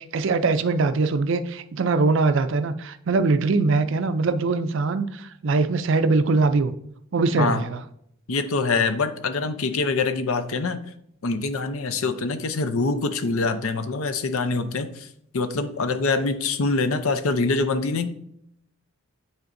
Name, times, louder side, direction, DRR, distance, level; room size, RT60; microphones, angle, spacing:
voice 1, 0.0-6.7 7.1-7.8, right 3 dB, 55° right, 11 dB, 0.4 m, -22 dB
voice 2, 8.3-10.8 11.2-15.1 15.3-18.1, left 3 dB, 70° left, 10 dB, 0.6 m, -24 dB
9.4 x 4.3 x 2.6 m, 0.73 s
head